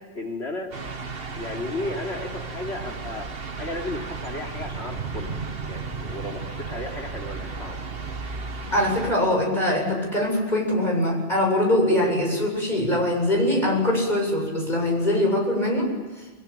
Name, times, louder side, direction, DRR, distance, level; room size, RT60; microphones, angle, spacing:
voice 1, 0.1-0.7 1.3-3.3 3.6-5.4 5.7-7.8, left 2 dB, 75° left, 1 dB, 3.7 m, -34 dB
sound 1, 0.7-9.1, right 4 dB, 60° right, 1.8 m, -34 dB
voice 2, 8.7-15.9, left 1 dB, 45° left, 0 dB, 8.3 m, -22 dB
29.0 x 21.5 x 9.0 m, 1.4 s
omnidirectional pair, 1.1 m